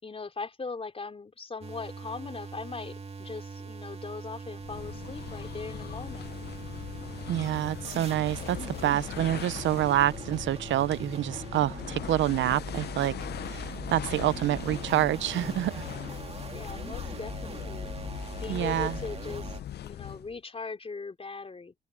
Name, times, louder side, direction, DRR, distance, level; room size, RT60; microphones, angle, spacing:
voice 1, 0.0-6.3 16.5-17.9 18.4-21.7, left 4 dB, 30° left, 4.2 m, -40 dB
sound 1, 1.6-19.6, right 4 dB, 30° right, 2.2 m, -42 dB
sound 2, 4.6-20.4, left 11 dB, 55° left, 0.6 m, -40 dB
voice 2, 7.3-15.9 18.5-19.0, right 13 dB, 70° right, 0.6 m, -27 dB
sound 3, 15.3-16.3 17.6-18.3, left 12 dB, 85° left, 3.0 m, -57 dB
open air
cardioid pair, 90°, 20 cm